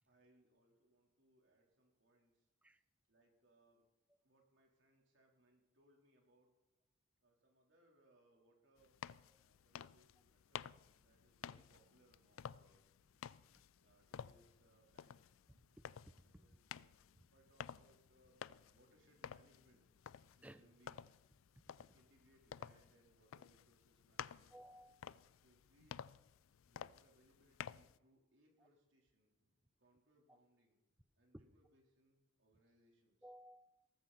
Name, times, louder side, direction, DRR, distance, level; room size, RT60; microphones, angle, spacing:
voice 1, 0.0-2.8 3.1-3.9 4.2-6.5 7.2-9.0 9.4-13.2 13.7-15.2 16.2-17.0 17.3-18.4 18.7-21.1 21.9-24.6 25.4-26.1 26.6-33.2, right 1 dB, 65° right, 3.7 m, -73 dB
sound 1, 8.8-28.0, left 8 dB, 85° left, 0.4 m, -53 dB
sound 2, 10.8-23.0, left 1 dB, 55° left, 2.4 m, -82 dB
voice 2, 15.8-16.1 20.4-20.6 21.6-21.7 24.5-25.2 33.2-33.9, equal, 5° right, 0.6 m, -59 dB
18.5 x 14.0 x 4.2 m
head